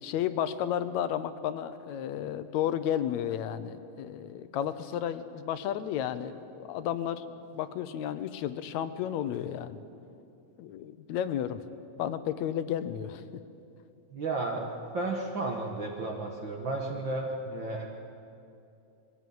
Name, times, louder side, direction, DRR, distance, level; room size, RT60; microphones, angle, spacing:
voice 1, 0.0-9.8 10.6-11.6 12.0-13.2, left 10 dB, 75° left, 12 dB, 1.9 m, -32 dB
voice 2, 14.1-14.7 14.9-17.9, right 2 dB, 50° right, 1 dB, 1.7 m, -33 dB
21.5 x 15.5 x 9.4 m, 2.6 s
omnidirectional pair, 3.5 m